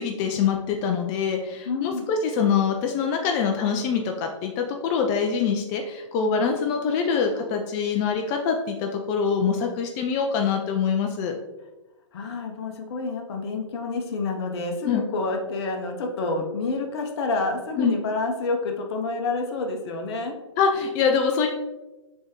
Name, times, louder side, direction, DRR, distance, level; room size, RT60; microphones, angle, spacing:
voice 1, 0.0-11.4 14.9-15.0 17.8-18.0 20.6-21.5, left 6 dB, 25° left, 3 dB, 0.3 m, -24 dB
voice 2, 1.6-2.1 12.1-20.3, left 3 dB, 55° left, 3 dB, 0.7 m, -28 dB
4.3 x 3.4 x 3.0 m, 1.1 s
hypercardioid pair, 125°, 16 cm